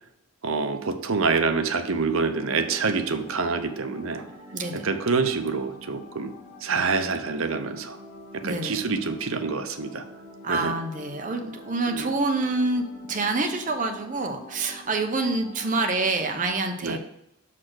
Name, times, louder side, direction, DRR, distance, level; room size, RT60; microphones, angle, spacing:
voice 1, 0.4-4.3 4.7-6.3 6.6-8.0 8.3-10.1 10.5-10.8 11.9-12.1 16.8-17.0, right 4 dB, 65° right, 8 dB, 0.7 m, -26 dB
sound 1, 2.0-16.5, equal, 10° right, 1.7 m, -46 dB
voice 2, 4.5-4.8 8.4-8.7 10.4-12.8 13.1-17.0, right 3 dB, 35° right, 4 dB, 0.8 m, -27 dB
6.4 x 4.2 x 6.2 m, 0.82 s
head